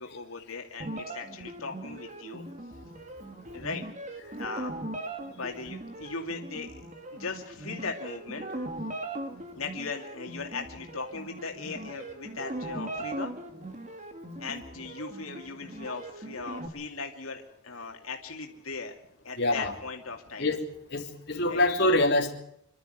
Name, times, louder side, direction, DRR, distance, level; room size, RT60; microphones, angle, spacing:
voice 1, 0.0-2.5 3.5-3.8 4.4-4.7 5.4-6.8 7.1-8.5 9.6-13.3 14.3-19.0 19.2-20.5 21.5-21.6, left 4 dB, 85° left, 2 dB, 2.6 m, -38 dB
sound 1, 0.8-16.7, right 1 dB, 35° right, 2.4 m, -39 dB
voice 2, 19.4-19.7 20.4-20.6 20.9-22.3, left 1 dB, 50° left, 1 dB, 3.2 m, -25 dB
26.5 x 12.5 x 9.3 m, 0.73 s
head